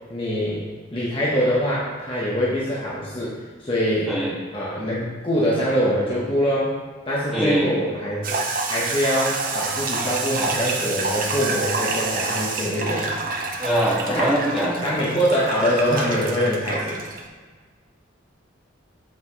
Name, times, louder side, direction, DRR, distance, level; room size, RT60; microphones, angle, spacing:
voice 1, 0.1-0.6 0.9-3.3 3.6-4.1 4.5-6.8 7.1-8.4 8.7-13.1 14.1-14.3 14.8-17.0, equal, 25° left, -7 dB, 1.1 m, -23 dB
voice 2, 7.3-7.7 13.6-14.8, equal, ahead, -9 dB, 1.9 m, -22 dB
sound 1, 8.2-17.2, right 3 dB, 45° right, 0.7 m, -28 dB
7.3 x 5.9 x 3.1 m, 1.5 s
head